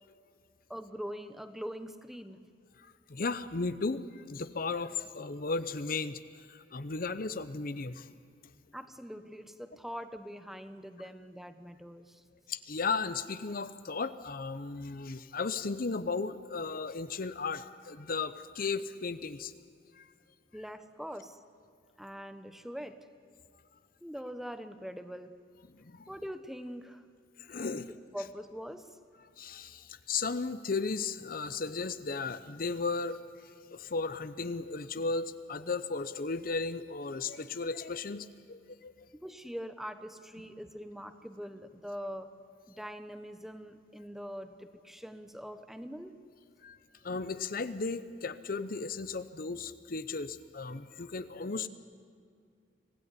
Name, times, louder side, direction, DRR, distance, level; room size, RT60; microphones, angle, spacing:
voice 1, 0.7-2.5 8.7-12.2 20.5-21.4 22.0-23.1 24.0-25.4 26.1-27.1 27.7-27.8 28.1-29.0 39.1-42.4 42.7-46.2, equal, ahead, 9 dB, 1.0 m, -43 dB
voice 2, 3.1-6.2 6.5-8.1 12.5-19.5 20.0-20.1 25.9-26.1 27.4-27.9 29.4-33.2 33.7-39.1 46.6-46.8 47.0-51.7, left 4 dB, 55° left, 12 dB, 0.8 m, -35 dB
25.5 x 16.5 x 9.8 m, 2.2 s
head